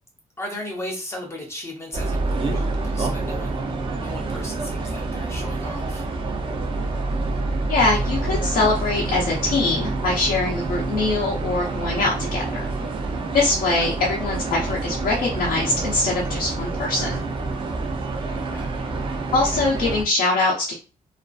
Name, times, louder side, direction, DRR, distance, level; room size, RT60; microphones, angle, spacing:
voice 1, 0.4-3.6 4.0-6.0 18.5-18.7, left 1 dB, 20° left, 0 dB, 0.5 m, -35 dB
sound 1, 1.9-20.0, right 3 dB, 35° right, 0.4 m, -27 dB
voice 2, 7.7-12.7 13.3-17.2 19.3-20.7, left 3 dB, 70° left, -3 dB, 0.6 m, -23 dB
2.4 x 2.3 x 2.3 m, 0.35 s
wide cardioid pair, 160°, 15 cm